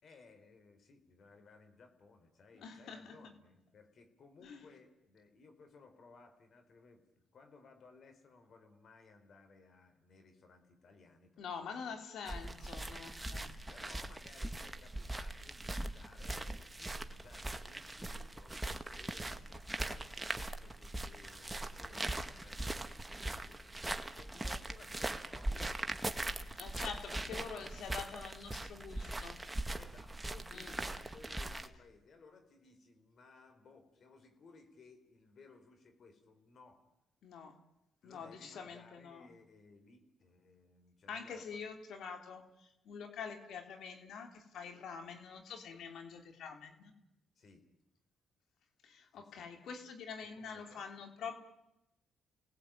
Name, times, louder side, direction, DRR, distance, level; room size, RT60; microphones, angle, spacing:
voice 1, 0.0-11.8 12.4-12.7 13.7-26.6 27.1-27.5 29.7-36.8 38.0-41.6 47.3-47.6 49.1-49.5 50.3-50.9, left 4 dB, 60° left, 7 dB, 4.5 m, -60 dB
voice 2, 2.6-3.3 4.4-4.6 11.4-13.6 26.6-29.4 30.5-30.7 37.2-37.5 38.0-39.3 41.1-46.9 48.8-51.3, left 6 dB, 75° left, 6 dB, 3.2 m, -46 dB
sound 1, 12.3-31.7, right 1 dB, 15° right, 1.9 m, -41 dB
29.0 x 19.0 x 9.1 m, 0.92 s
supercardioid pair, 65°, 0 cm